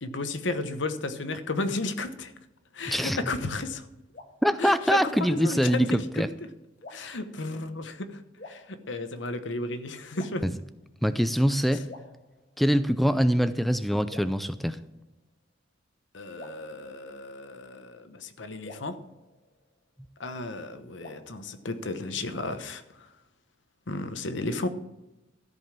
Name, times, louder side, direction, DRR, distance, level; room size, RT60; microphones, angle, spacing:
voice 1, 0.0-2.3 2.7-3.8 4.6-6.2 6.9-8.2 8.5-10.4 16.1-18.9 20.2-22.8 23.9-24.7, left 2 dB, 70° left, 10 dB, 1.0 m, -33 dB
voice 2, 2.9-3.2 4.4-6.3 7.0-7.1 10.4-10.5 11.0-11.9 12.6-14.8, equal, ahead, 11 dB, 0.4 m, -24 dB
sound 1, 4.1-4.3 4.6-4.8 5.1-5.3 5.6-5.8 6.8-7.2 8.4-9.2 10.1-10.9 11.9-12.9 14.1-15.2 16.4-17.6 18.6-20.1 21.0-22.2, left 2 dB, 45° left, 1.4 m, -48 dB
13.5 x 5.4 x 7.4 m, 0.98 s
head